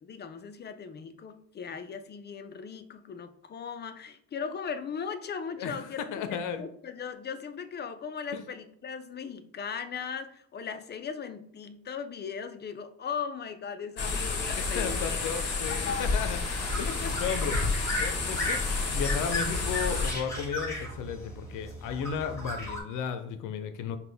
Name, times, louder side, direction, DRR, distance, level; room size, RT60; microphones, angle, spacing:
voice 1, 0.0-15.2 15.7-16.1 16.9-17.1, left 6 dB, 35° left, 10 dB, 0.5 m, -38 dB
voice 2, 5.6-6.6 8.3-8.4 14.6-16.4 16.8-17.6 18.0-24.0, left 7 dB, 85° left, 9 dB, 0.6 m, -34 dB
sound 1, 14.0-20.1, left 3 dB, 55° left, 1.1 m, -30 dB
sound 2, 15.5-22.8, left 1 dB, 10° left, 1.8 m, -36 dB
5.7 x 2.3 x 3.4 m, 0.68 s
cardioid pair, 90°, 30 cm